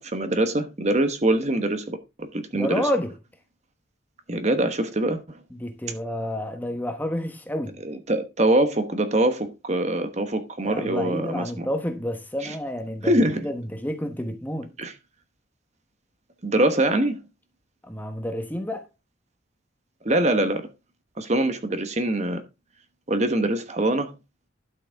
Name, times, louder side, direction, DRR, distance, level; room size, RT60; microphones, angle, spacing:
voice 1, 0.0-2.8 4.3-5.4 7.8-11.7 12.4-12.5 13.0-13.5 14.8-14.9 16.4-17.2 20.0-20.7 21.2-22.4 23.1-24.1, right 1 dB, 35° right, 1.0 m, -24 dB
voice 2, 2.5-3.1 5.5-7.8 10.6-14.7 17.9-18.9, equal, 10° left, 1.0 m, -29 dB
12.0 x 6.5 x 3.5 m
head